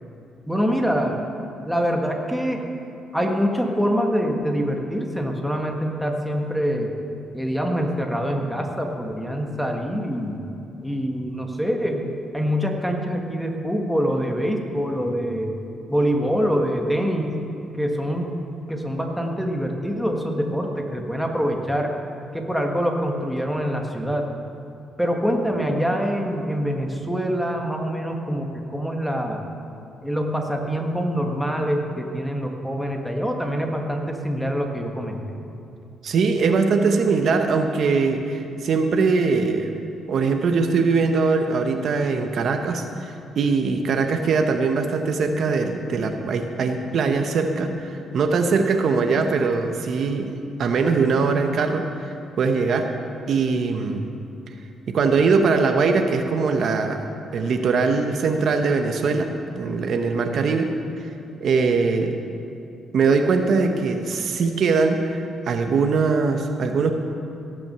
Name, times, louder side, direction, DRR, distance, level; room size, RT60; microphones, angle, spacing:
voice 1, 0.5-1.2 1.6-2.6 3.1-6.9 7.3-10.4 10.8-12.1 12.3-15.5 15.9-17.4 17.8-18.3 18.7-21.9 22.3-24.3 25.0-29.4 30.0-35.4, equal, ahead, 2 dB, 1.5 m, -25 dB
voice 2, 36.0-39.7 40.1-50.3 50.6-52.9 53.3-54.0 54.9-57.1 57.3-59.3 59.5-60.7 61.0-61.1 61.4-62.2 62.9-66.9, right 4 dB, 60° right, 5 dB, 0.9 m, -21 dB
17.0 x 6.1 x 6.7 m, 2.6 s
cardioid pair, 90°, 0 cm